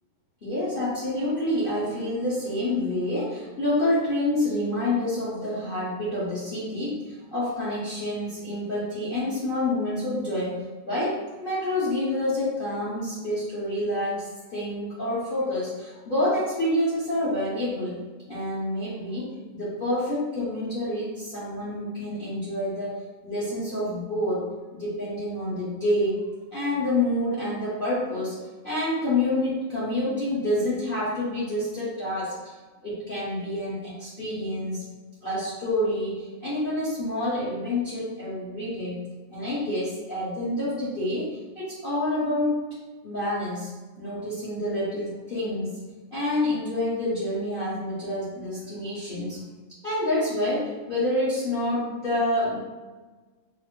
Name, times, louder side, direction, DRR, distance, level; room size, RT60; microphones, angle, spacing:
voice 1, 0.4-18.0 18.3-19.3 19.5-24.4 24.7-26.2 26.5-28.3 28.6-32.3 32.8-34.8 35.2-39.0 39.3-41.3 41.5-42.6 43.0-43.7 44.0-45.8 46.1-49.4 49.8-52.6, left 1 dB, 40° left, -9 dB, 0.8 m, -28 dB
4.0 x 2.1 x 3.0 m, 1.3 s
omnidirectional pair, 2.1 m